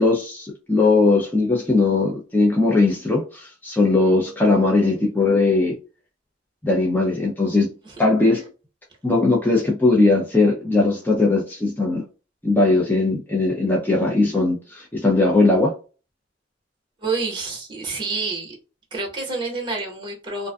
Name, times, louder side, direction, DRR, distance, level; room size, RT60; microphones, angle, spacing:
voice 1, 0.0-5.7 6.6-7.7 8.0-8.4 9.0-12.0 12.4-15.7, left 3 dB, 10° left, 0.4 m, -19 dB
voice 2, 17.0-18.5 18.9-20.5, right 3 dB, 25° right, 0.9 m, -28 dB
2.5 x 2.3 x 2.2 m
head